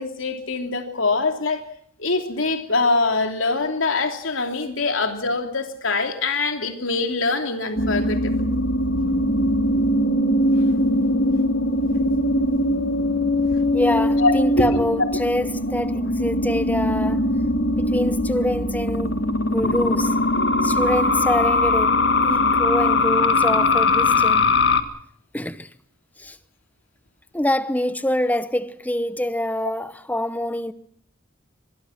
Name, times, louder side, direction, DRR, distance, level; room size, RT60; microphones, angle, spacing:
voice 1, 0.0-1.6 2.0-8.5 13.0-13.1 14.2-14.8 19.6-19.9 20.4-20.9, left 3 dB, 80° left, 3.1 m, -24 dB
sound 1, 7.8-24.8, left 2 dB, 60° left, 1.7 m, -21 dB
voice 2, 13.7-17.3 17.8-19.2 19.5-20.2 20.6-24.4 25.3-25.7 26.2-26.4 27.3-30.7, left 1 dB, 10° left, 0.9 m, -25 dB
25.0 x 22.0 x 5.9 m
head